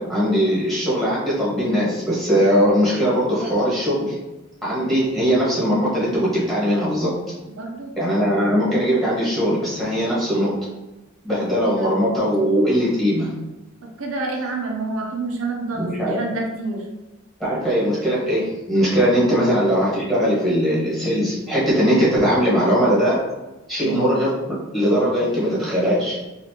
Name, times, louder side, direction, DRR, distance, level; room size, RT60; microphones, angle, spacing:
voice 1, 0.0-4.2 4.6-7.1 8.0-10.5 11.2-13.3 15.7-16.2 17.4-23.2 23.7-24.3 24.7-26.2, equal, ahead, -8 dB, 1.3 m, -20 dB
voice 2, 7.6-7.9 11.6-11.9 14.0-16.8 19.3-19.4 23.8-24.0, right 3 dB, 75° right, 0 dB, 0.6 m, -28 dB
4.2 x 2.5 x 2.8 m, 1.1 s
head